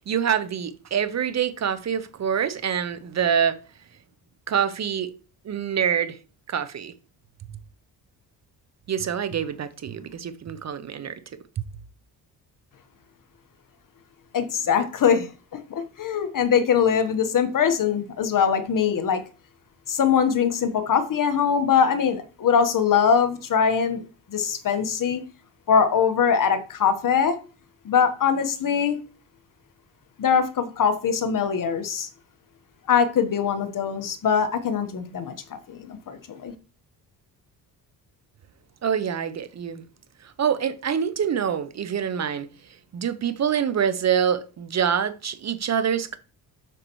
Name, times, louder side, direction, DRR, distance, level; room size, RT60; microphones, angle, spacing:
voice 1, 0.0-3.6 4.5-5.1 5.4-6.2 6.5-6.9 8.9-11.2 38.8-39.8 40.2-42.5 42.9-46.2, right 8 dB, 40° right, 0.6 m, -25 dB
voice 2, 14.3-15.3 15.7-19.2 19.9-24.0 24.3-25.2 25.7-27.4 27.8-29.0 30.2-32.1 32.9-36.5, left 7 dB, 50° left, 1.2 m, -22 dB
7.6 x 6.5 x 3.1 m
cardioid pair, 95°, 41 cm